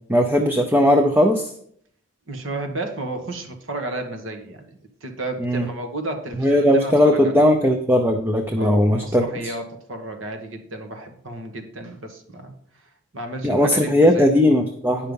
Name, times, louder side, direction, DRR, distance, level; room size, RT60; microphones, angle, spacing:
voice 1, 0.1-1.5 5.4-5.7 6.4-9.5 13.4-15.1, left 1 dB, 10° right, 5 dB, 0.6 m, -18 dB
voice 2, 2.3-4.7 5.0-7.4 8.6-14.3, right 2 dB, 65° right, 5 dB, 1.5 m, -32 dB
9.5 x 5.7 x 5.3 m, 0.67 s
head